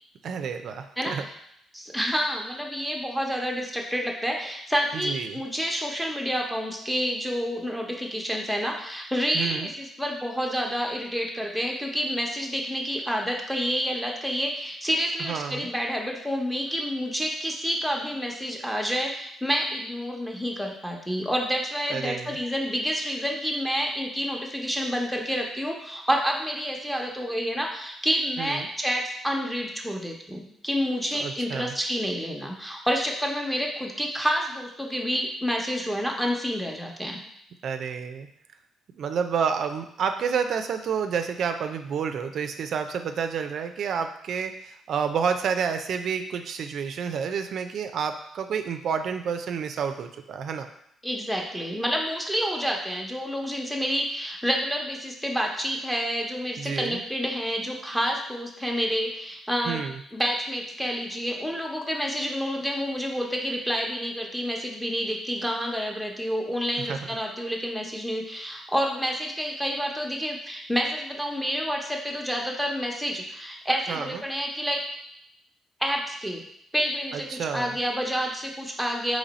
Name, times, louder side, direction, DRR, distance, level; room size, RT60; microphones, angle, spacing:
voice 1, 0.2-1.3 4.9-5.4 9.3-9.7 15.2-15.7 21.9-22.4 28.4-28.7 31.1-31.7 37.6-38.3 38.9-50.7 56.6-57.0 59.7-60.0 66.8-67.1 73.9-74.2 77.1-77.8, right 6 dB, 65° right, 7 dB, 0.4 m, -29 dB
voice 2, 1.7-37.2 51.0-59.8 60.1-74.8 75.8-76.4 76.7-79.2, equal, ahead, 0 dB, 0.8 m, -29 dB
4.0 x 3.0 x 4.1 m, 0.74 s
cardioid pair, 90°, 0 cm